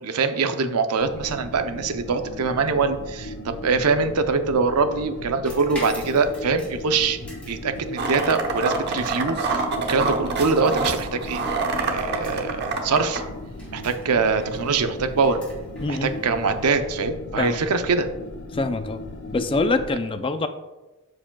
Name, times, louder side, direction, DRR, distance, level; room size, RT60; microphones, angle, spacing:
voice 1, 0.0-7.2 7.5-9.6 9.9-11.4 11.8-13.2 13.7-15.4 15.9-18.1, right 4 dB, 85° right, 8 dB, 0.6 m, -23 dB
sound 1, 1.0-19.9, left 1 dB, 55° left, 0.7 m, -37 dB
sound 2, 5.4-16.8, equal, 5° left, 2.4 m, -46 dB
sound 3, 8.0-13.2, right 4 dB, 50° right, 0.9 m, -26 dB
voice 2, 15.8-16.1 17.4-17.6 18.5-19.0 19.3-20.5, left 3 dB, 25° left, 9 dB, 0.4 m, -24 dB
13.0 x 4.8 x 2.3 m, 1.1 s
head